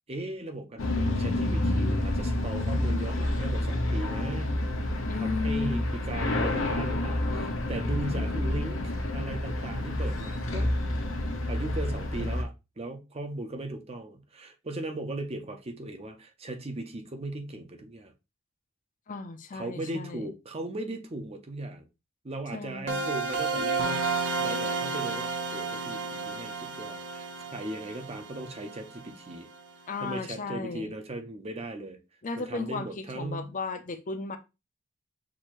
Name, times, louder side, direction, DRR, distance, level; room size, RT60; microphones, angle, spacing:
voice 1, 0.1-4.6 5.1-10.7 11.5-18.1 19.5-21.9 22.2-27.3 27.5-29.5 30.0-32.0 32.4-33.5, right 2 dB, 30° right, 0.7 m, -38 dB
sound 1, 0.8-12.4, left 1 dB, 80° left, 1.0 m, -29 dB
voice 2, 5.0-5.8 19.1-20.3 22.5-23.0 29.9-30.9 32.2-34.4, left 4 dB, 40° left, 0.5 m, -34 dB
sound 2, 22.9-29.5, right 4 dB, 65° right, 0.9 m, -32 dB
6.1 x 2.7 x 3.0 m
head